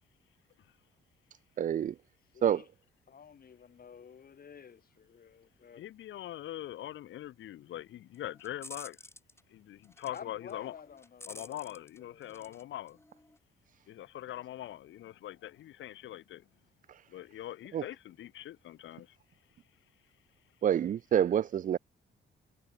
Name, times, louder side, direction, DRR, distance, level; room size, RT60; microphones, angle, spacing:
voice 1, 1.6-2.0 2.4-2.6 16.9-17.0 17.7-17.8 20.6-21.8, right 9 dB, 40° right, 0.4 m, -27 dB
voice 2, 2.3-2.7 3.1-5.9 10.1-12.6, left 7 dB, 50° left, 4.3 m, -52 dB
voice 3, 5.8-9.0 9.5-10.8 11.3-13.0 13.9-16.4 17.1-19.1, left 13 dB, 75° left, 1.5 m, -42 dB
sound 1, 8.1-9.4 9.8-10.2 10.5-12.6 12.9-13.4, left 2 dB, 10° left, 7.9 m, -50 dB
cardioid pair, 90°, 20 cm